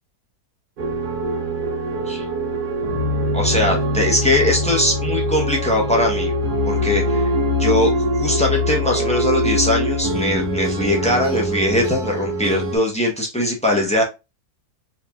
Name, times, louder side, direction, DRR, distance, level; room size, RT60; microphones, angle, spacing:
sound 1, 0.8-12.8, equal, 75° right, 1.4 m, -22 dB
voice 1, 3.3-6.3 6.6-7.3 7.6-7.9 8.2-14.0, left 1 dB, 10° left, 0 dB, 0.4 m, -21 dB
4.5 x 3.0 x 2.2 m, 0.26 s
omnidirectional pair, 1.7 m